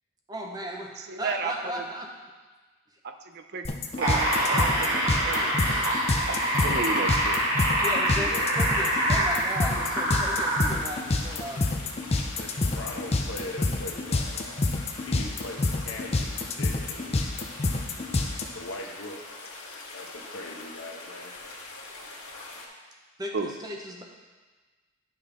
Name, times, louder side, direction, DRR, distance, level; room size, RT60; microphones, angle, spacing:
voice 1, 0.3-2.1 7.8-11.7 23.2-24.0, equal, 20° right, 0 dB, 0.8 m, -36 dB
voice 2, 1.0-1.8 3.0-3.7 4.0-5.5 6.3-7.4 23.3-23.5, right 4 dB, 50° right, 6 dB, 0.4 m, -34 dB
sound 1, 3.6-18.4, left 2 dB, 30° left, 0.5 m, -27 dB
sound 2, 3.9-10.8 11.6-11.7, right 1 dB, 80° right, 2.5 m, -25 dB
voice 3, 6.5-7.1 8.1-8.7 12.4-14.6 15.1-17.2 18.5-19.3 19.9-21.4, left 1 dB, 60° left, 1 dB, 1.1 m, -40 dB
sound 3, 8.3-22.7, left 2 dB, 85° left, 1.4 m, -43 dB
10.5 x 5.7 x 3.5 m, 1.3 s
head